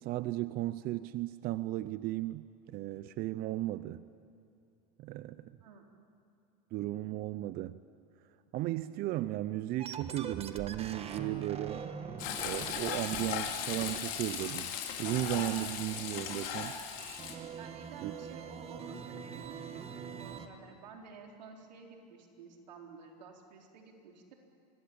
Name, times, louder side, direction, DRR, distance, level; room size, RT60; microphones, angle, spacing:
voice 1, 0.0-4.0 5.0-5.6 6.7-7.8 8.5-11.9 12.4-16.8 18.0-18.1, right 15 dB, 45° right, 15 dB, 0.7 m, -35 dB
voice 2, 5.6-5.9 17.6-24.3, right 4 dB, 85° right, 2 dB, 4.1 m, -52 dB
sound 1, 9.8-20.5, right 6 dB, 30° right, 1.7 m, -44 dB
Frying (food), 12.2-17.3, left 8 dB, 60° left, 3.4 m, -37 dB
25.0 x 20.0 x 8.8 m, 2.7 s
hypercardioid pair, 110°, 21 cm